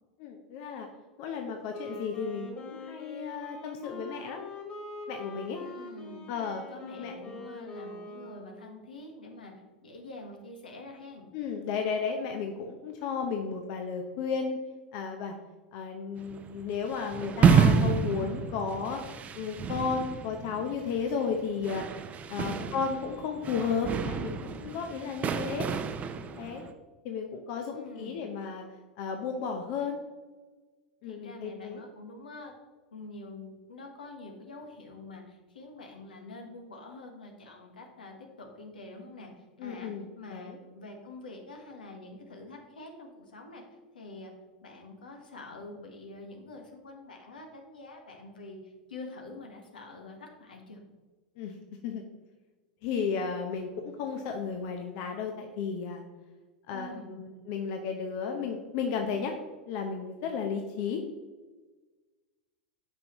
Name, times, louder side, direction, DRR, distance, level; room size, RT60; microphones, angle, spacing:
voice 1, 0.2-0.9 1.2-4.4 5.1-5.6 6.3-6.6 7.0-7.4 11.3-14.6 14.9-15.3 15.7-21.8 22.3-25.7 26.4-26.6 27.0-28.6 29.0-30.0 31.0-31.8 39.6-40.1 40.3-40.6 51.4-51.5 51.8-52.0 52.8-56.0 56.7-59.3 59.7-61.0, left 6 dB, 55° left, 3 dB, 0.8 m, -33 dB
Wind instrument woodwind instrument, 1.6-8.8, left 2 dB, 25° left, 2.2 m, -44 dB
voice 2, 5.5-6.3 6.7-9.5 9.8-11.3 22.3-22.8 27.8-28.2 31.0-32.5 32.9-43.6 43.9-44.3 44.6-50.8 56.7-57.1, left 2 dB, 85° left, 3 dB, 1.4 m, -46 dB
sound 1, 16.2-26.7, right 6 dB, 30° right, 0.6 m, -29 dB
8.8 x 5.4 x 3.0 m, 1.3 s
hypercardioid pair, 95°, 5 cm